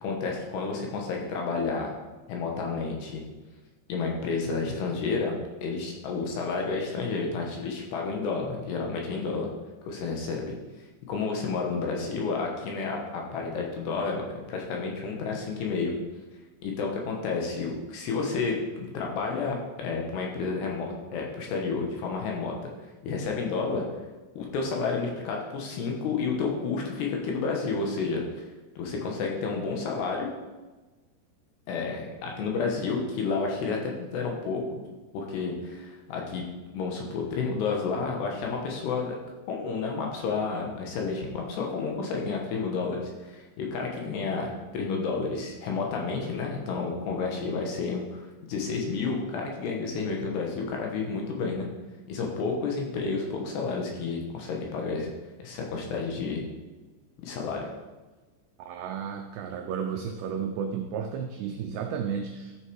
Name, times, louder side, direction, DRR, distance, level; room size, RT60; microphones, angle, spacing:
voice 1, 0.0-1.9 2.3-3.2 3.9-9.5 9.9-10.5 11.1-15.9 16.6-22.5 23.0-23.8 24.4-28.2 28.8-30.3 31.7-34.8 35.1-36.4 36.7-39.2 39.5-51.7 52.1-55.1 55.4-56.4 57.2-57.7, left 4 dB, 70° left, 0 dB, 3.0 m, -30 dB
voice 2, 58.6-62.6, right 7 dB, 90° right, 4 dB, 2.4 m, -33 dB
13.0 x 6.8 x 4.7 m, 1.2 s
omnidirectional pair, 5.7 m